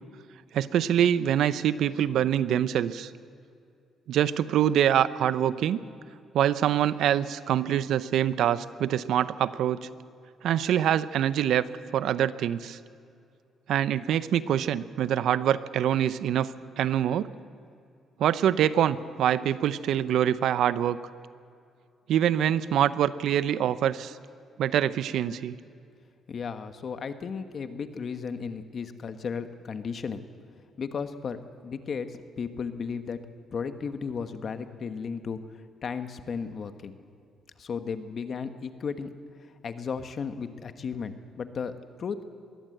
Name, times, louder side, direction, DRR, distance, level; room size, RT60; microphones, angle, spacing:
voice 1, 0.5-3.1 4.1-5.8 6.3-9.9 10.4-12.8 13.7-17.3 18.2-21.0 22.1-24.2 24.6-25.6, right 10 dB, 75° right, 15 dB, 0.7 m, -25 dB
voice 2, 26.3-30.2 30.8-32.1 32.4-33.2 33.5-35.4 35.8-36.9 37.6-39.1 39.6-42.2, left 6 dB, 50° left, 9 dB, 1.3 m, -34 dB
22.0 x 16.5 x 7.9 m, 2.4 s
cardioid pair, 90°, 0 cm